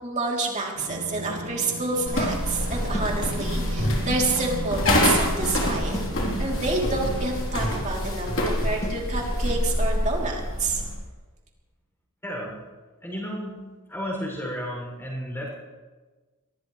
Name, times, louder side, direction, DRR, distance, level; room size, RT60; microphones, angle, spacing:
voice 1, 0.0-6.1 6.4-10.8, right 3 dB, 35° right, -1 dB, 3.2 m, -28 dB
sound 1, 0.7-9.3, right 1 dB, 60° right, 1.8 m, -37 dB
sound 2, 2.1-11.0, left 1 dB, 60° left, 3.6 m, -26 dB
sound 3, 2.9-3.2 5.9-6.2 8.8-9.1, left 1 dB, 30° left, 2.4 m, -34 dB
voice 2, 12.2-12.6 13.0-13.6 13.9-15.5, equal, 10° left, -2 dB, 6.5 m, -32 dB
24.0 x 17.5 x 3.3 m, 1.3 s
head